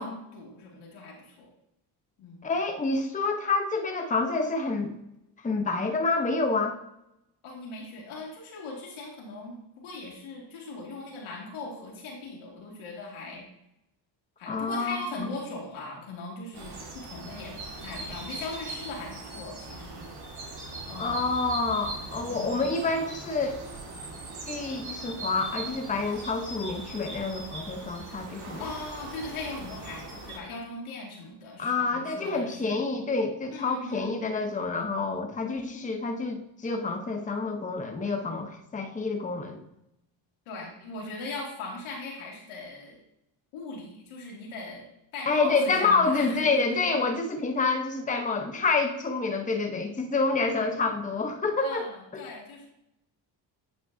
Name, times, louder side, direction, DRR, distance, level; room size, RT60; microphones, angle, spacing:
voice 1, 0.0-1.5 2.2-2.5 7.4-13.4 14.4-20.1 20.8-21.4 22.3-22.6 28.6-32.8 33.5-34.1 40.5-43.0 43.5-44.9 45.1-47.0 51.6-52.7, left 3 dB, 85° left, -2 dB, 2.3 m, -39 dB
voice 2, 2.4-4.9 5.4-6.8 14.5-15.4 21.0-23.6 24.5-28.6 31.6-39.6 45.3-51.9 52.1-52.2, left 3 dB, 15° left, 5 dB, 0.8 m, -28 dB
sound 1, 16.5-30.4, right 2 dB, 55° right, 2.0 m, -40 dB
9.0 x 5.2 x 2.7 m, 0.84 s
cardioid pair, 75°, 47 cm